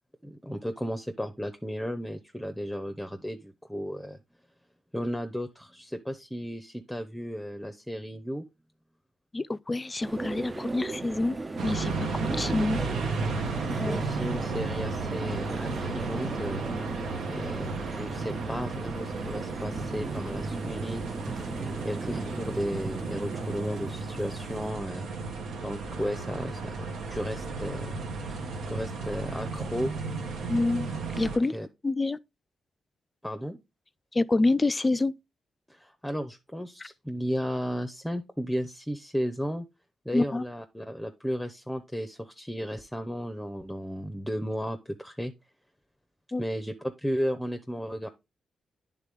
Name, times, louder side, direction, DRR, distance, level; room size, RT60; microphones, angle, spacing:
voice 1, 0.2-4.2 4.9-8.4 13.8-16.6 17.3-21.0 21.8-25.1 25.6-27.9 28.3-29.9 31.5-31.7 33.2-33.6 35.7-39.7 40.0-45.3 46.4-48.1, equal, 5° left, 0.7 m, -34 dB
voice 2, 9.3-11.4 11.6-12.8 13.8-14.0 30.5-30.9 31.2-31.6 31.8-32.2 34.1-35.1 40.1-40.4 46.3-46.4, left 2 dB, 25° left, 0.4 m, -27 dB
sound 1, 10.0-24.7, right 3 dB, 30° right, 0.5 m, -38 dB
sound 2, 11.6-31.4, right 4 dB, 85° right, 1.0 m, -34 dB
9.7 x 3.6 x 3.5 m
cardioid pair, 65°, 0 cm